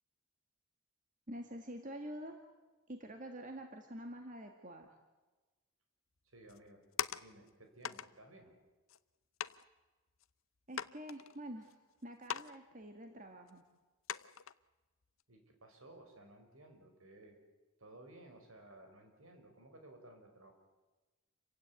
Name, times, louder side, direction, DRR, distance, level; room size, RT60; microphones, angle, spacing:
voice 1, 1.3-2.4 2.9-5.0 10.7-13.6, right 1 dB, 35° right, 4 dB, 2.0 m, -47 dB
voice 2, 6.2-6.8 7.2-8.5 15.3-17.4 17.8-20.5, right 1 dB, 70° right, 5 dB, 5.4 m, -57 dB
sound 1, 6.5-7.5 7.8-8.1 8.9-9.0 9.4-9.7 10.2-10.3 10.7-11.7 12.2-12.6 12.8-12.9 13.5-13.6 14.1-14.5 15.0-15.2, left 9 dB, 65° left, 0.7 m, -41 dB
29.0 x 16.5 x 9.5 m, 1.2 s
head